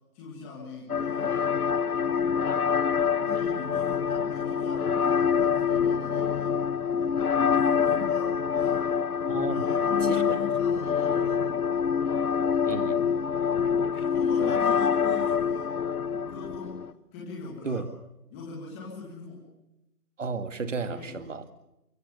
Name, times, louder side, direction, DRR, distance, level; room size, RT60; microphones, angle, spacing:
voice 1, 0.1-1.6 2.0-2.5 3.2-6.6 7.1-8.9 9.5-11.5 13.9-15.8 16.3-16.8 17.1-17.8 18.3-19.5 20.8-21.4, left 4 dB, 10° left, -3 dB, 1.9 m, -40 dB
josephs und Marien glocke, 0.9-16.9, left 7 dB, 65° left, 1.6 m, -26 dB
voice 2, 9.3-9.7 10.0-10.4 12.6-13.0 17.6-17.9 20.2-21.4, right 4 dB, 50° right, 10 dB, 2.2 m, -33 dB
24.0 x 24.0 x 6.8 m, 0.92 s
figure-of-eight pair, 165°, 48 cm